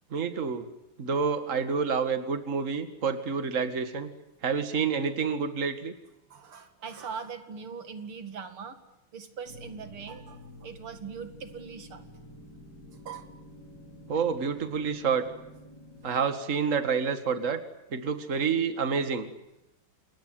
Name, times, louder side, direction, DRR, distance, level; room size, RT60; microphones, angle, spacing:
voice 1, 0.1-0.7 1.0-4.1 4.4-5.9 14.1-15.2 16.0-17.6 17.9-19.3, right 5 dB, 35° right, 9 dB, 2.2 m, -28 dB
voice 2, 6.3-8.8 9.1-12.0 12.9-13.3, right 6 dB, 85° right, 9 dB, 3.0 m, -41 dB
sound 1, 9.4-16.2, equal, 50° left, 8.1 m, -49 dB
28.5 x 21.5 x 9.4 m, 0.89 s
omnidirectional pair, 2.3 m